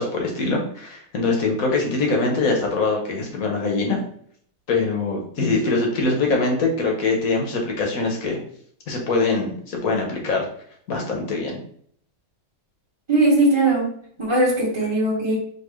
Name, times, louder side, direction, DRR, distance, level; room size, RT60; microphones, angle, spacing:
voice 1, 0.0-4.0 4.7-8.4 8.9-10.5 10.9-11.6, left 3 dB, 60° left, 1 dB, 1.2 m, -23 dB
voice 2, 13.1-13.9 14.2-15.3, right 2 dB, 20° right, -7 dB, 0.9 m, -19 dB
4.5 x 2.8 x 3.1 m, 0.62 s
omnidirectional pair, 1.9 m